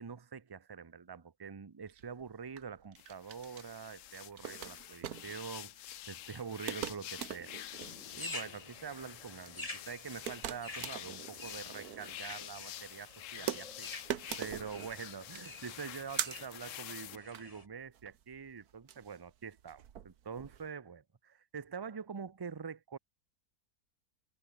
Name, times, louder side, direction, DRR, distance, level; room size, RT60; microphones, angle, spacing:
voice 1, 0.0-7.6 8.1-13.9 14.4-23.0, right 6 dB, 35° right, 0.3 m, -45 dB
sound 1, 1.9-20.7, right 10 dB, 85° right, 1.5 m, -44 dB
sound 2, 3.0-17.2, left 13 dB, 65° left, 0.9 m, -48 dB
sound 3, 7.7-17.7, left 2 dB, 25° left, 2.6 m, -49 dB
omnidirectional pair, 1.6 m